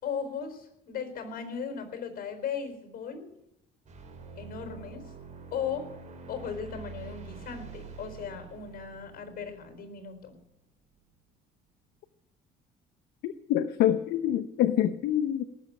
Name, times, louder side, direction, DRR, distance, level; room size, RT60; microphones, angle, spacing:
voice 1, 0.0-3.3 4.4-5.1 5.5-5.9 6.3-10.4, left 7 dB, 60° left, 7 dB, 4.3 m, -37 dB
sound 1, 3.8-10.5, right 4 dB, 45° right, 3.8 m, -46 dB
voice 2, 13.2-15.4, left 11 dB, 80° left, 9 dB, 0.8 m, -26 dB
19.0 x 7.3 x 10.0 m, 0.84 s
cardioid pair, 110°, 17 cm